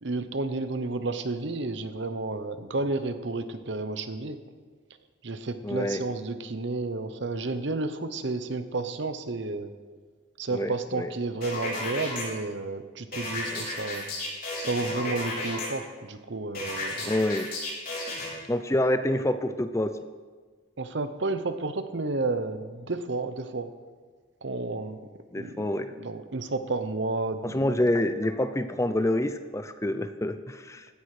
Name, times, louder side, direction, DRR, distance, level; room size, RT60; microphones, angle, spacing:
voice 1, 0.0-4.4 5.2-9.7 10.4-14.0 14.6-17.1 20.8-23.7 24.4-25.0 25.3-25.6 26.0-27.8, right 3 dB, 65° right, 10 dB, 0.9 m, -31 dB
voice 2, 5.6-6.0 10.5-11.1 13.5-13.7 17.0-17.5 18.5-19.9 25.3-25.9 27.4-30.9, left 1 dB, 15° left, 10 dB, 0.5 m, -27 dB
sound 1, 11.4-12.2 13.1-15.7 16.5-18.3, left 2 dB, 45° left, 5.2 m, -33 dB
16.0 x 10.0 x 5.0 m, 1.5 s
head